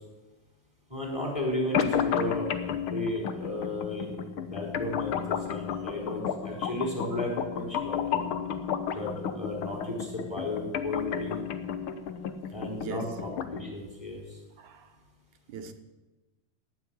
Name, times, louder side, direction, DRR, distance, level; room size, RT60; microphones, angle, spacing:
voice 1, 0.9-4.2 4.5-8.3 8.9-11.3 12.5-14.2, left 1 dB, 10° left, 4.3 m, -34 dB
sound 1, 1.7-13.7, left 8 dB, 65° left, 1.4 m, -32 dB
voice 2, 12.8-13.2 14.6-14.9 15.5-15.7, right 5 dB, 80° right, 2.5 m, -40 dB
18.0 x 6.9 x 9.5 m
omnidirectional pair, 3.4 m